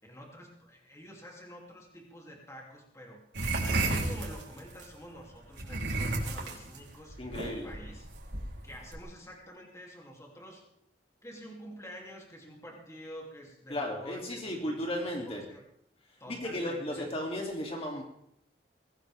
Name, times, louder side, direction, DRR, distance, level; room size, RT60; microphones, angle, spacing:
voice 1, 0.0-3.2 3.6-8.1 8.6-10.6 11.2-15.6 16.2-17.1, equal, 15° left, -1 dB, 3.1 m, -48 dB
sound 1, 3.3-4.9 5.5-9.0, right 2 dB, 85° right, 3.9 m, -32 dB
voice 2, 7.2-7.7 13.7-15.4 16.3-18.0, left 1 dB, 35° left, 0 dB, 3.0 m, -35 dB
23.0 x 17.0 x 3.7 m, 0.73 s
head